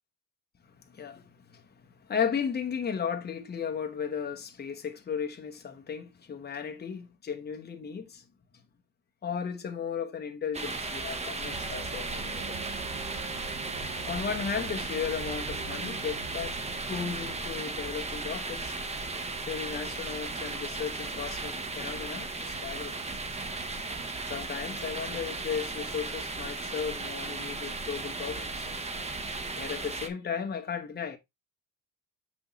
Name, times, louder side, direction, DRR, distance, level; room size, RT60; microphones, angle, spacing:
voice 1, 0.6-8.2 9.2-12.6 14.1-16.6 16.9-18.8 19.4-23.0 24.2-28.7 29.5-31.2, left 7 dB, 25° left, 1.0 m, -35 dB
sound 1, 10.5-30.1, right 3 dB, 15° right, 0.7 m, -36 dB
Bus, 11.5-17.4, right 4 dB, 75° right, 1.9 m, -43 dB
7.0 x 6.1 x 2.9 m
cardioid pair, 170°, 40 cm